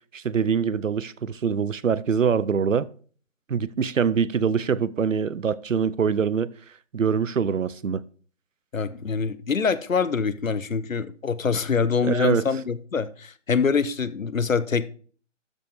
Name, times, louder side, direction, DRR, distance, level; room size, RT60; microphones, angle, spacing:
voice 1, 0.1-2.9 3.5-6.5 6.9-8.0 12.0-12.5, right 6 dB, 80° right, 0.6 m, -24 dB
voice 2, 8.7-14.9, left 5 dB, 90° left, 0.9 m, -25 dB
13.0 x 5.3 x 3.5 m
figure-of-eight pair, 170°, 39 cm